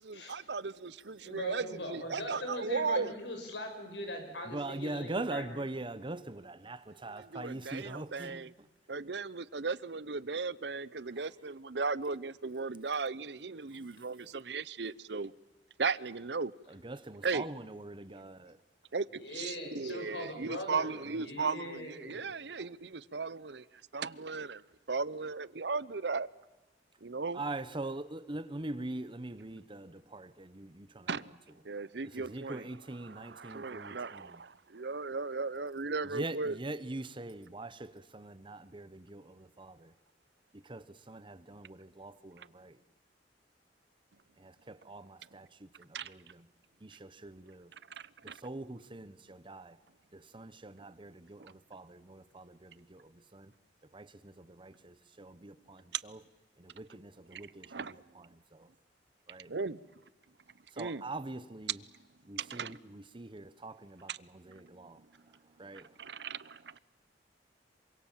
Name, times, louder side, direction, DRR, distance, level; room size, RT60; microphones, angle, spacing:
voice 1, 0.0-3.1 7.1-8.5 8.9-15.3 15.8-16.5 17.2-17.5 18.9-23.6 23.9-24.6 24.9-26.3 27.0-27.4 31.1-31.3 31.6-32.7 33.0-36.6 42.4-42.5 45.9-46.1 48.0-48.4 55.9-56.0 57.3-58.0 59.5-59.8 60.8-61.0 62.4-62.8 64.1-64.2 64.5-64.6 66.0-66.8, right 4 dB, 70° right, 0.8 m, -36 dB
voice 2, 1.2-5.6 19.2-22.4, left 1 dB, 85° left, 7.1 m, -41 dB
voice 3, 4.5-8.4 11.2-11.3 16.7-18.6 27.3-31.1 32.0-34.4 36.1-39.9 40.5-42.8 44.4-46.4 46.8-47.7 48.2-49.8 50.1-53.5 53.9-56.2 56.6-57.8 58.1-58.2 58.5-58.7 59.3-59.5 60.7-61.8 62.3-65.0 65.6-65.9, right 2 dB, 30° right, 1.0 m, -43 dB
27.0 x 25.0 x 7.5 m
head